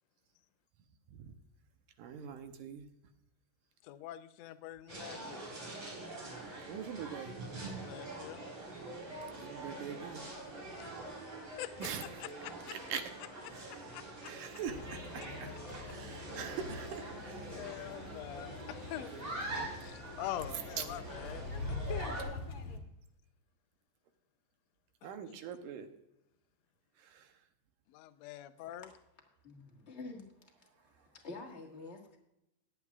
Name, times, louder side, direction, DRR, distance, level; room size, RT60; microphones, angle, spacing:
voice 1, 2.0-2.9 6.7-7.3 9.4-10.2 11.8-12.2 12.9-13.0 13.5-13.7 14.2-15.5 15.8-17.5 20.8-20.9 25.0-25.9 27.0-27.3, right 8 dB, 80° right, 7 dB, 2.3 m, -43 dB
voice 2, 3.8-5.5 7.8-8.4 10.8-10.9 11.6-11.7 12.0-12.8 13.4-14.3 17.5-19.1 19.5-22.2 22.8-22.9 25.0-25.4 27.9-28.9, left 13 dB, 80° left, 11 dB, 1.5 m, -45 dB
sound 1, 4.9-22.2, right 2 dB, 50° right, 5.9 m, -45 dB
sound 2, 14.7-22.8, left 3 dB, 50° left, 1.9 m, -44 dB
voice 3, 29.4-30.2 31.2-32.2, left 3 dB, 30° left, 1 dB, 1.3 m, -46 dB
21.0 x 8.4 x 2.4 m, 0.85 s
omnidirectional pair, 3.7 m